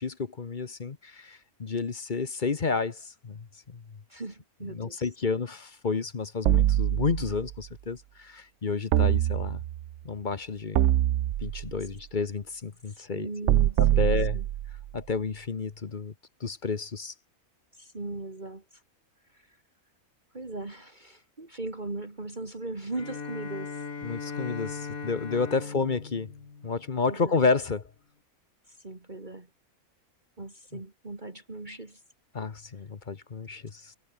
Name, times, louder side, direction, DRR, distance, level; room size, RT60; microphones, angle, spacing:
voice 1, 0.0-3.8 4.7-9.6 10.0-10.9 11.4-13.3 13.8-14.4 14.9-16.1 16.4-17.1 24.0-26.3 26.6-27.8 32.3-33.9, left 4 dB, 35° left, 1.1 m, -31 dB
voice 2, 4.1-5.3 12.9-14.5 17.7-18.8 19.3-19.6 20.3-23.8 25.6-25.7 27.0-27.4 28.7-29.5 30.4-32.0, right 2 dB, 30° right, 2.5 m, -39 dB
sound 1, 6.5-7.5 8.9-9.9 10.7-11.8 13.5-14.9, right 13 dB, 65° right, 0.8 m, -24 dB
Bowed string instrument, 22.9-27.3, left 5 dB, 65° left, 2.6 m, -39 dB
omnidirectional pair, 1.6 m